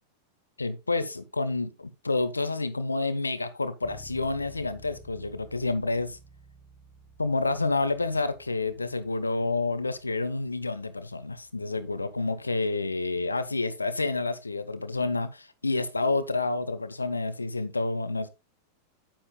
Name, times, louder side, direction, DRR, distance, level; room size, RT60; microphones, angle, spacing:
voice 1, 0.6-6.2 7.2-18.3, left 3 dB, 80° left, 0.9 m, -29 dB
Bass guitar, 3.8-13.5, left 1 dB, 5° left, 2.9 m, -54 dB
9.7 x 9.0 x 2.2 m
figure-of-eight pair, 90°, 0 cm